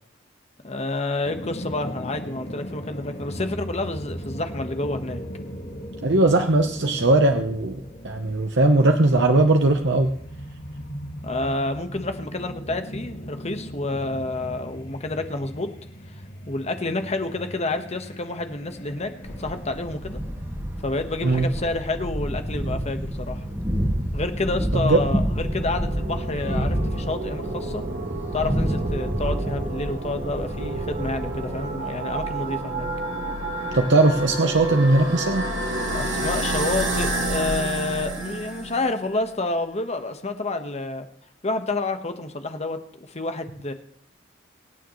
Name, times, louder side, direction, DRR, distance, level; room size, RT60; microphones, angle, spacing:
voice 1, 0.6-5.2 11.2-15.7 16.5-20.2 20.8-23.4 24.1-27.8 28.3-32.9 35.9-41.1 41.4-42.8 43.1-43.7, left 2 dB, 35° left, 7 dB, 1.3 m, -29 dB
sound 1, 1.2-19.6, equal, 65° left, 4.6 m, -38 dB
voice 2, 6.0-10.1 21.2-21.5 24.8-25.0 33.7-35.4, right 2 dB, 65° right, 5 dB, 1.0 m, -19 dB
Thunder, 19.2-32.6, equal, 10° right, 6.3 m, -29 dB
sound 2, 25.0-39.0, right 2 dB, 80° right, 2.4 m, -30 dB
24.5 x 9.1 x 3.1 m, 0.63 s
head